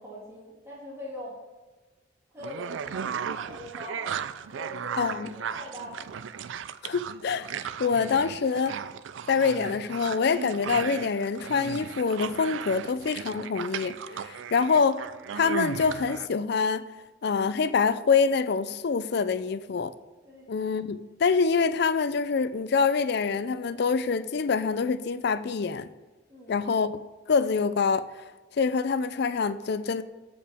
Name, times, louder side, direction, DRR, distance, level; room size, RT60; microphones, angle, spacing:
voice 1, 0.0-1.4 2.3-4.2 4.5-6.1 20.2-20.5 26.3-26.6, equal, 15° right, 2.4 m, -42 dB
sound 1, 2.4-16.3, right 7 dB, 75° right, 0.4 m, -36 dB
voice 2, 5.0-5.3 6.8-8.8 9.3-15.0 15.3-16.8 17.2-19.9 20.5-25.9 26.5-27.0 27.3-28.1 28.6-30.0, left 5 dB, 55° left, 0.4 m, -25 dB
14.0 x 5.2 x 3.5 m
head